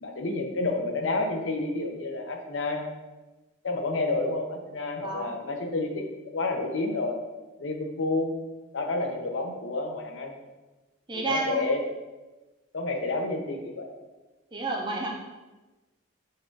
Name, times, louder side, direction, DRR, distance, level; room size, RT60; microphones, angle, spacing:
voice 1, 0.0-2.9 3.6-7.2 7.6-8.3 8.7-10.3 11.1-11.8 12.7-13.9, left 2 dB, 85° left, 3 dB, 0.6 m, -29 dB
voice 2, 5.0-5.3 11.1-11.7 14.5-15.1, right 3 dB, 25° right, 0 dB, 0.5 m, -30 dB
4.5 x 2.4 x 4.6 m, 1.1 s
head